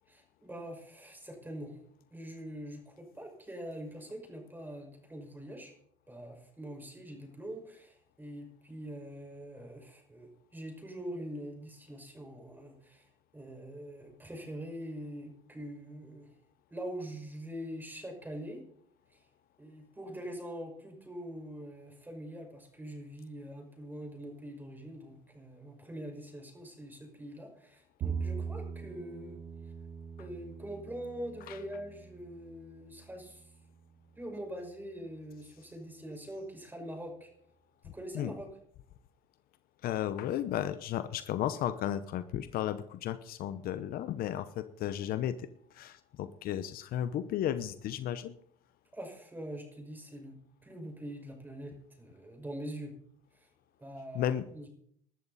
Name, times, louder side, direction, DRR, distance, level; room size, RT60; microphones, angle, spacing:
voice 1, 0.1-1.8 2.1-5.7 6.1-16.3 16.7-18.7 19.1-19.2 19.6-29.4 30.2-33.5 34.1-37.3 37.8-38.5 48.9-50.4 50.6-52.9 53.3-53.5 53.8-54.7, equal, 10° right, 2 dB, 5.8 m, -44 dB
Bowed string instrument, 28.0-34.3, right 6 dB, 55° right, 1.6 m, -42 dB
voice 2, 39.8-48.3 54.1-54.5, left 11 dB, 60° left, 12 dB, 1.0 m, -34 dB
21.0 x 12.5 x 4.2 m, 0.67 s
supercardioid pair, 100°, 17 cm